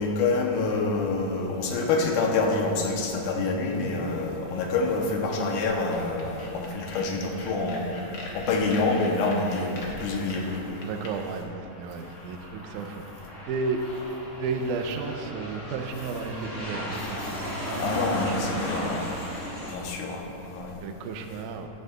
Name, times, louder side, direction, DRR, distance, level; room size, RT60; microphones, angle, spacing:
voice 1, 0.0-8.0 8.3-10.6 17.8-19.1 19.7-20.8, left 3 dB, 80° left, 1 dB, 2.4 m, -27 dB
sound 1, 5.9-11.1, left 1 dB, 60° left, 1.1 m, -42 dB
Aircraft, 9.7-19.7, left 1 dB, 40° left, 1.1 m, -36 dB
voice 2, 10.8-13.0 13.5-13.8 14.4-19.1 20.8-21.7, right 4 dB, 80° right, 5 dB, 2.0 m, -33 dB
13.5 x 9.3 x 2.4 m, 2.8 s
omnidirectional pair, 3.7 m